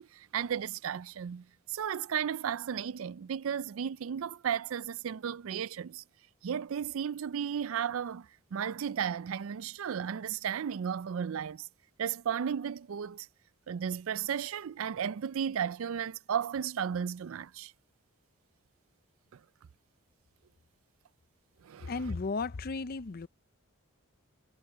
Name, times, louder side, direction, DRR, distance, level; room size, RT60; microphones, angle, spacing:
voice 1, 0.0-6.0 6.4-11.7 12.0-13.3 13.7-17.7 21.6-21.9, right 8 dB, 70° right, 0.4 m, -34 dB
voice 2, 21.9-23.3, left 3 dB, 45° left, 0.5 m, -34 dB
head